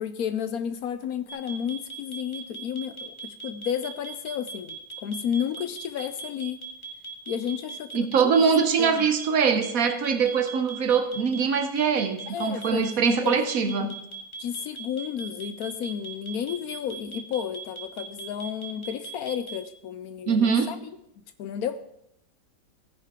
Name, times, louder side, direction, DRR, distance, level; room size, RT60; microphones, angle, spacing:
voice 1, 0.0-6.6 7.3-8.4 8.8-9.1 12.3-13.9 14.4-20.8 21.4-21.8, left 8 dB, 70° left, 12 dB, 1.0 m, -32 dB
sound 1, 1.3-19.6, right 5 dB, 15° left, 2.0 m, -39 dB
voice 2, 7.9-13.9 20.3-20.7, right 6 dB, 60° right, 9 dB, 1.2 m, -23 dB
15.0 x 10.0 x 3.6 m, 0.80 s
omnidirectional pair, 1.8 m